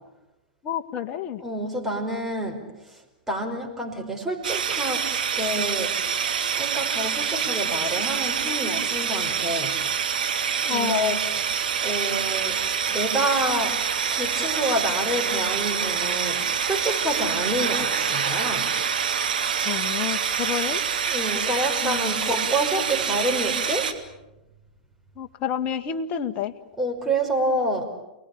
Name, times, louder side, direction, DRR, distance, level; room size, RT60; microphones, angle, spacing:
voice 1, 0.6-1.4 10.6-11.2 19.6-20.8 21.8-22.1 22.4-22.5 25.1-26.5, left 9 dB, 30° left, 6 dB, 1.8 m, -29 dB
voice 2, 1.4-3.0 3.3-5.9 6.5-9.8 10.6-11.2 11.8-12.6 12.9-13.8 14.1-18.7 21.1-23.9 26.8-27.9, right 1 dB, 5° right, 1 dB, 5.5 m, -28 dB
sound 1, 4.4-23.9, right 7 dB, 70° right, 2.7 m, -26 dB
29.0 x 20.0 x 8.7 m, 0.96 s
figure-of-eight pair, 110°, 5 cm